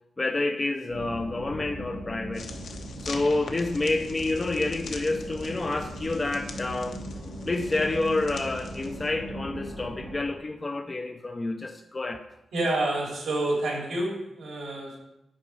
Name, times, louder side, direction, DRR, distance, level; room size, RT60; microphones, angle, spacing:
voice 1, 0.2-2.4 3.0-7.0 7.5-12.2, left 2 dB, 20° left, 5 dB, 0.5 m, -28 dB
sound 1, 0.9-10.2, equal, 30° right, 2.2 m, -39 dB
sound 2, 2.3-9.1, left 4 dB, 70° left, 0.9 m, -44 dB
voice 2, 12.5-15.0, right 2 dB, 70° right, -2 dB, 3.0 m, -28 dB
8.5 x 5.3 x 4.7 m, 0.87 s
wide cardioid pair, 165°, 0 cm